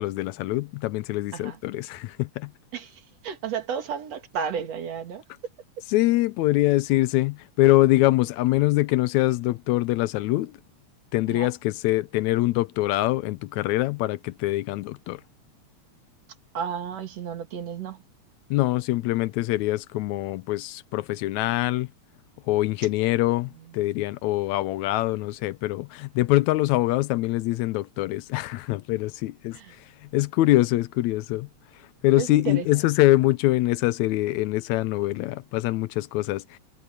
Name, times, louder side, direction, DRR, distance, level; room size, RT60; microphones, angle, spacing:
voice 1, 0.0-2.5 5.9-10.6 11.1-15.2 18.5-21.9 22.5-31.5 32.0-36.6, left 17 dB, 85° left, 1.9 m, -24 dB
voice 2, 2.7-5.2 11.3-11.5 16.5-18.0 23.0-23.2 23.6-23.7 29.5-29.8 32.2-32.8, right 7 dB, 60° right, 3.2 m, -33 dB
omnidirectional pair, 3.4 m